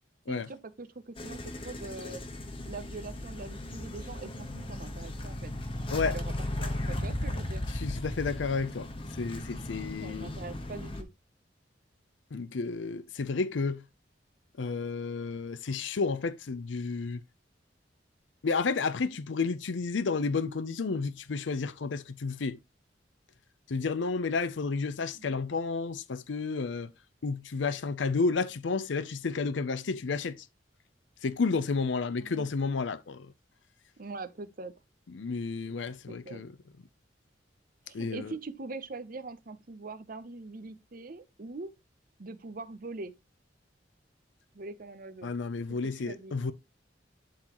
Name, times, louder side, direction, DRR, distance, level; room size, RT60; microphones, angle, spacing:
voice 1, 0.3-2.2 2.7-5.5 6.0-6.3 6.6-7.6 10.0-11.1 25.1-25.4 32.2-32.5 34.0-34.7 36.2-36.4 37.9-41.7 42.2-43.1 44.5-45.3 45.7-46.3, right 3 dB, 50° right, 0.7 m, -42 dB
sound 1, 1.2-11.0, left 1 dB, 30° left, 1.2 m, -36 dB
voice 2, 7.7-8.9 9.2-10.3 12.3-13.8 14.6-17.2 18.4-22.6 23.7-26.9 27.2-30.4 31.2-33.3 35.1-36.5 37.9-38.3 45.2-46.5, left 4 dB, 85° left, 0.6 m, -31 dB
11.5 x 3.9 x 3.0 m
head